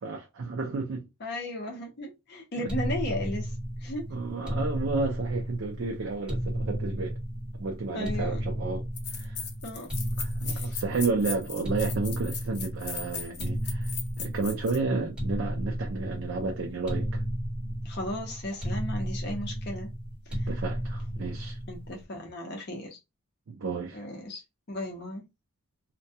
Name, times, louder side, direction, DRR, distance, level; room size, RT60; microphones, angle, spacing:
voice 1, 0.0-1.1 2.6-2.7 4.1-7.2 7.6-8.9 9.1-9.4 10.2-17.2 20.5-21.6 23.5-24.0, right 3 dB, 60° right, 0.4 m, -32 dB
voice 2, 1.2-3.5 3.8-4.1 7.9-8.4 9.6-9.9 10.5-10.7 17.8-19.9 21.7-23.0 23.9-24.4 24.7-25.2, left 1 dB, 45° left, 0.6 m, -35 dB
sound 1, 2.7-22.0, equal, 5° right, 1.1 m, -33 dB
sound 2, 8.4-8.5 9.0-14.8, left 6 dB, 90° left, 0.6 m, -38 dB
2.2 x 2.2 x 2.7 m
head